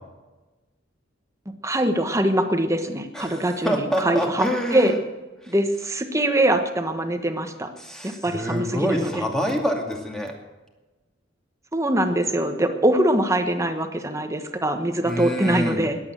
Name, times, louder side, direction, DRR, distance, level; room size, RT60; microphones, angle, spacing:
voice 1, 1.6-4.5 4.7-4.9 5.5-7.7 8.0-9.2 11.7-16.0, right 1 dB, 15° right, 7 dB, 1.3 m, -23 dB
voice 2, 3.1-5.0 5.4-5.6 7.8-10.3 15.0-15.9, equal, 5° left, 1 dB, 2.4 m, -26 dB
21.0 x 8.8 x 7.6 m, 1.2 s
head